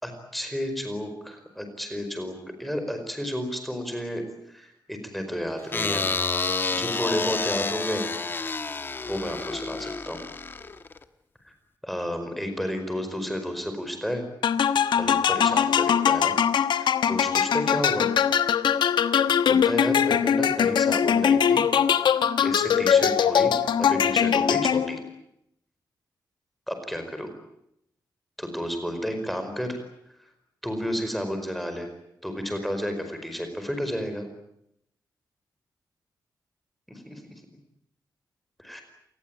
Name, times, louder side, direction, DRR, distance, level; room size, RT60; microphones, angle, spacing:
voice 1, 0.0-6.0 6.7-8.0 9.0-10.2 11.4-11.5 11.8-14.2 15.0-16.4 16.7-18.1 18.7-18.8 19.5-21.6 22.4-23.5 23.8-25.0 26.7-27.3 28.4-29.8 30.2-30.3 30.6-31.9 32.2-34.3 37.1-37.2 38.6-38.8, equal, ahead, 6 dB, 4.8 m, -31 dB
sound 1, 5.7-11.0, left 4 dB, 30° left, 1.2 m, -29 dB
sound 2, 14.4-25.1, left 8 dB, 85° left, 1.2 m, -22 dB
27.5 x 20.0 x 8.9 m, 0.78 s
wide cardioid pair, 180°, 8 cm